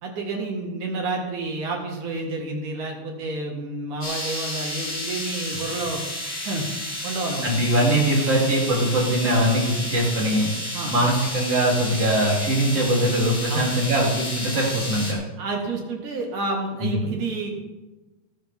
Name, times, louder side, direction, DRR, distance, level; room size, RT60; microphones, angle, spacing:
voice 1, 0.0-6.0 6.5-6.7 7.0-7.5 10.7-10.9 13.5-13.7 15.4-17.6, right 3 dB, 55° right, 0 dB, 3.0 m, -29 dB
sound 1, 4.0-15.1, left 1 dB, 25° left, 4.1 m, -31 dB
voice 2, 7.4-10.5 10.9-15.2 16.8-17.1, right 1 dB, 40° right, -5 dB, 4.1 m, -22 dB
17.5 x 10.0 x 3.7 m, 1.1 s
omnidirectional pair, 4.7 m